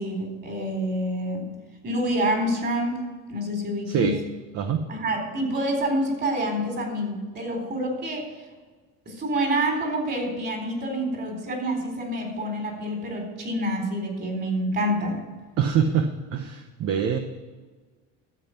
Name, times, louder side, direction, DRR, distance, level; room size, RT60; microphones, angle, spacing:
voice 1, 0.0-1.5 1.8-3.0 3.3-4.2 4.9-8.4 9.1-15.2, right 1 dB, 35° right, 3 dB, 4.0 m, -27 dB
voice 2, 3.9-4.2 4.5-4.8 15.6-17.2, right 7 dB, 50° right, 6 dB, 1.0 m, -24 dB
13.0 x 7.8 x 5.8 m, 1.4 s
cardioid pair, 120°, 31 cm